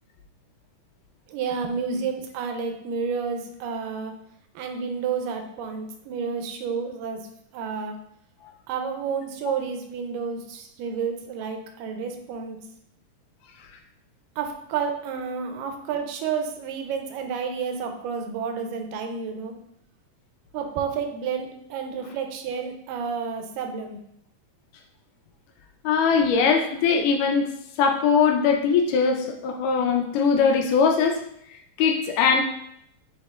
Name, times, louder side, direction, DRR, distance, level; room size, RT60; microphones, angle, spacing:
voice 1, 1.3-4.1 4.6-7.3 7.5-8.0 8.7-12.6 14.4-19.5 20.5-24.0, right 6 dB, 90° right, 5 dB, 2.2 m, -30 dB
voice 2, 25.8-27.5 27.8-31.2 31.8-32.4, left 5 dB, 80° left, 3 dB, 2.1 m, -21 dB
6.5 x 3.5 x 2.3 m, 0.75 s
omnidirectional pair, 3.8 m